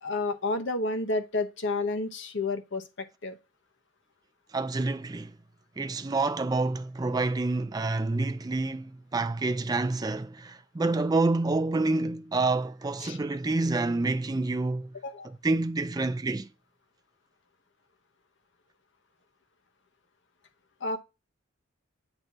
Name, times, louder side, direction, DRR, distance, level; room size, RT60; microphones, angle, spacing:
voice 1, 0.0-3.4 13.0-13.2 15.0-15.3 20.8-21.0, left 2 dB, 60° left, 0.9 m, -30 dB
voice 2, 4.5-5.3 5.8-14.9 15.4-16.5, right 3 dB, 20° right, 0.4 m, -28 dB
7.9 x 2.7 x 5.8 m
head